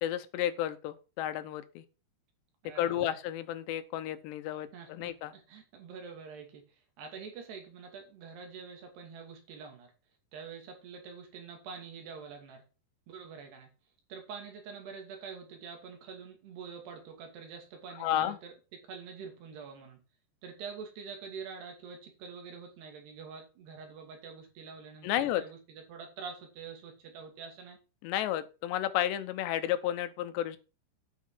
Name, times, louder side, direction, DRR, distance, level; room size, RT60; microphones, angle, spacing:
voice 1, 0.0-1.8 2.8-5.3 18.0-18.4 25.0-25.4 28.0-30.6, left 12 dB, 85° left, 11 dB, 3.2 m, -32 dB
voice 2, 2.6-3.2 4.7-6.6 7.0-9.9 10.3-12.6 13.1-13.7 14.1-18.5 18.9-20.0 20.4-27.8, right 5 dB, 70° right, 4 dB, 4.6 m, -46 dB
9.6 x 8.5 x 4.6 m, 0.32 s
omnidirectional pair, 4.9 m